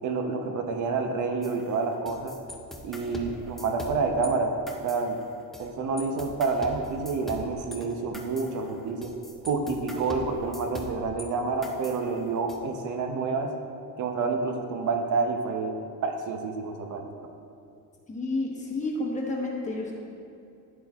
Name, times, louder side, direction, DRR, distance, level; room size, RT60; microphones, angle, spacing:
voice 1, 0.0-2.4 2.8-4.5 4.8-5.2 5.6-9.1 9.4-13.5 14.0-17.1, right 4 dB, 55° right, 4 dB, 0.7 m, -28 dB
sound 1, 1.4-4.3 4.7-5.7 6.0-11.3 11.6-12.6, equal, ahead, 0.3 m, -42 dB
voice 2, 18.1-19.9, left 2 dB, 20° left, -3 dB, 1.0 m, -30 dB
9.6 x 7.7 x 2.4 m, 2.6 s
cardioid pair, 165°, 36 cm